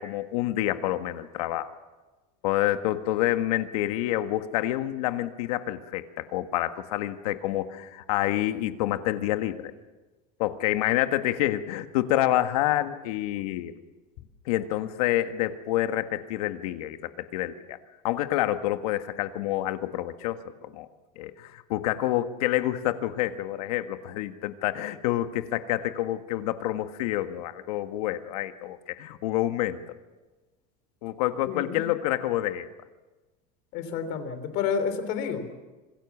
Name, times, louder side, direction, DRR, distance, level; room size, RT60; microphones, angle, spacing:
voice 1, 0.0-1.7 2.4-9.7 10.4-13.7 14.5-17.8 18.0-20.9 21.2-29.8 31.0-32.7, left 14 dB, 85° left, 9 dB, 1.6 m, -28 dB
voice 2, 31.5-31.8 33.7-35.6, left 6 dB, 50° left, 9 dB, 3.3 m, -30 dB
26.5 x 21.5 x 7.3 m, 1.2 s
cardioid pair, 175°, 19 cm